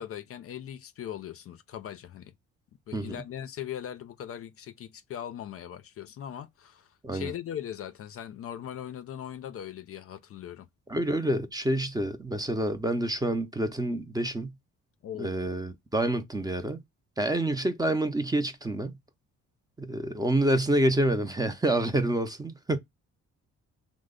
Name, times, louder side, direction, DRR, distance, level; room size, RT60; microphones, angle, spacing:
voice 1, 0.0-2.3 2.9-10.7 15.0-15.5, left 10 dB, 50° left, 0.4 m, -40 dB
voice 2, 10.9-14.5 15.2-16.8 17.2-19.0 19.8-22.8, right 1 dB, 15° right, 0.5 m, -27 dB
3.1 x 2.0 x 3.6 m
cardioid pair, 90°, 30 cm